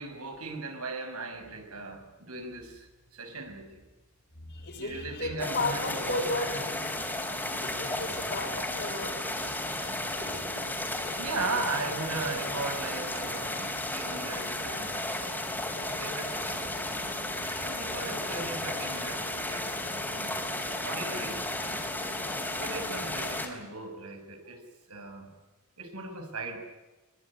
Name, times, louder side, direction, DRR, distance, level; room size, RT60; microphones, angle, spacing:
voice 1, 0.0-2.9 3.1-3.8 4.8-6.5 11.2-15.7 16.0-17.1 17.6-20.3 20.8-22.0 22.6-25.3 25.8-26.6, right 3 dB, 85° right, 5 dB, 5.7 m, -38 dB
voice 2, 4.4-6.5 7.6-9.1, left 2 dB, 50° left, 2 dB, 5.9 m, -34 dB
sound 1, 5.4-23.5, left 1 dB, 10° left, 3.9 m, -34 dB
23.0 x 22.5 x 9.9 m, 1.2 s
head